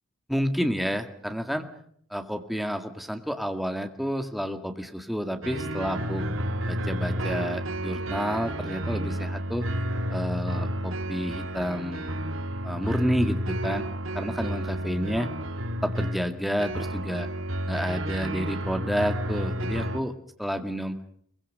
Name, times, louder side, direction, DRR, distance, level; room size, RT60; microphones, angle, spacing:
voice 1, 0.3-1.7 2.1-6.2 6.7-9.7 10.1-12.1 12.6-13.8 14.1-15.3 15.8-17.3 17.7-20.1 20.4-21.0, equal, ahead, 6 dB, 2.0 m, -30 dB
sound 1, 5.4-20.0, equal, 85° right, 1.9 m, -31 dB
23.0 x 22.0 x 6.7 m, 0.64 s
head